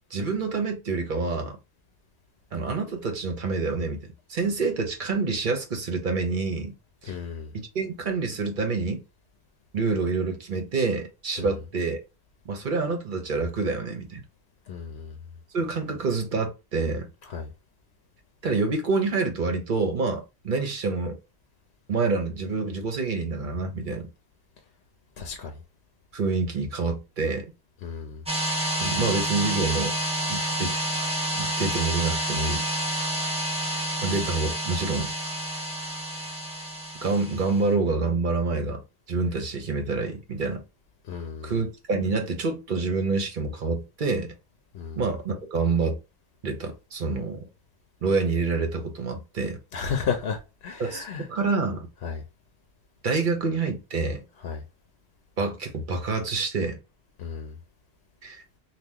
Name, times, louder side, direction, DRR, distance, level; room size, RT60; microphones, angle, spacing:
voice 1, 0.1-1.6 2.5-6.7 7.0-7.1 7.5-9.0 9.7-12.0 12.4-14.2 15.5-17.1 18.4-21.2 21.9-24.1 26.1-27.5 28.8-30.0 30.3-30.8 31.3-32.7 34.0-35.1 37.0-38.8 39.1-40.6 41.4-44.3 45.0-46.0 46.4-47.4 48.0-49.6 50.8-51.9 53.0-54.2 55.4-56.8 58.2-58.4, right 4 dB, 55° right, 0.9 m, -27 dB
voice 2, 7.0-7.5 11.4-11.5 14.7-15.1 17.3-17.5 25.2-25.6 27.8-28.2 41.1-41.5 44.7-45.0 49.7-51.3 52.0-52.2 54.4-54.6 57.2-57.6, left 6 dB, 70° left, 0.9 m, -33 dB
sound 1, 28.3-37.6, right 1 dB, 5° right, 0.8 m, -29 dB
2.9 x 2.3 x 3.6 m
omnidirectional pair, 1.1 m